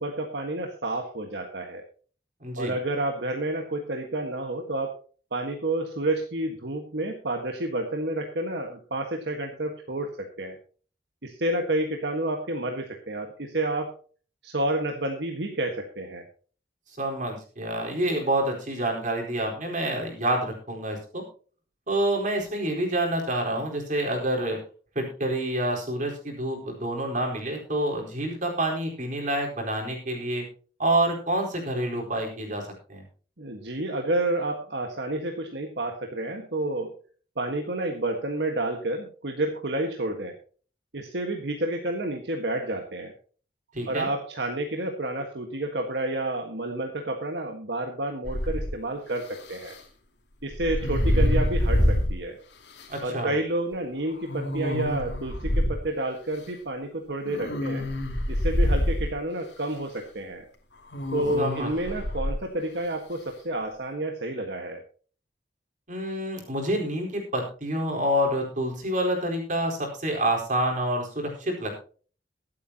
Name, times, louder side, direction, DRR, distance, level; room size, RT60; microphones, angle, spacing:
voice 1, 0.0-1.8 2.6-4.9 5.3-10.6 11.2-13.9 14.4-16.2 33.4-36.9 37.4-40.4 40.9-43.1 43.9-49.8 50.4-52.4 53.0-57.9 58.3-60.4 61.1-64.8, right 1 dB, 75° right, 3 dB, 1.6 m, -30 dB
voice 2, 2.4-2.7 17.0-21.2 21.9-24.6 24.9-30.4 30.8-32.6 32.9-33.0 43.7-44.1 52.9-53.3 61.4-62.0 65.9-71.8, right 1 dB, 45° right, 0 dB, 4.4 m, -28 dB
sound 1, 48.2-48.8 50.5-52.2 52.8-52.9 54.3-55.8 57.3-59.2 60.9-62.4, equal, 80° left, 2.7 m, -25 dB
22.5 x 8.5 x 2.9 m, 0.40 s
head